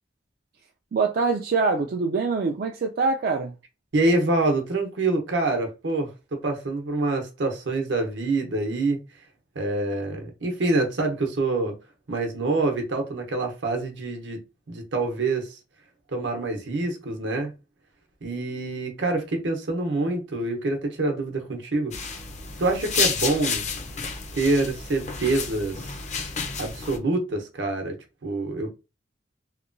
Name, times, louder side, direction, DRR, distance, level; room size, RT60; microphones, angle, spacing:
voice 1, 0.9-3.5, right 4 dB, 55° right, 0.3 m, -24 dB
voice 2, 3.9-9.0 9.5-11.8 12.1-14.4 14.7-15.6 16.1-17.5 18.2-21.9 22.6-23.7 24.3-25.9 26.6-28.0 28.2-28.7, right 2 dB, 75° right, 0.8 m, -26 dB
sound 1, 21.9-27.0, left 5 dB, 40° left, 0.5 m, -30 dB
2.9 x 2.2 x 2.5 m
head